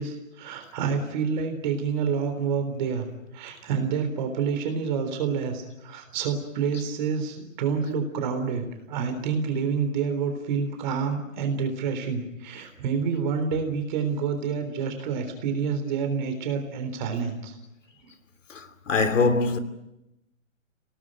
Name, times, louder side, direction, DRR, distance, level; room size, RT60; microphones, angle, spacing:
voice 1, 0.0-3.1 3.3-17.6 18.0-18.1, right 6 dB, 35° right, 3.7 m, -28 dB
voice 2, 18.5-19.6, left 4 dB, 65° left, 3.2 m, -23 dB
27.0 x 18.5 x 9.1 m
hypercardioid pair, 150°, 40 cm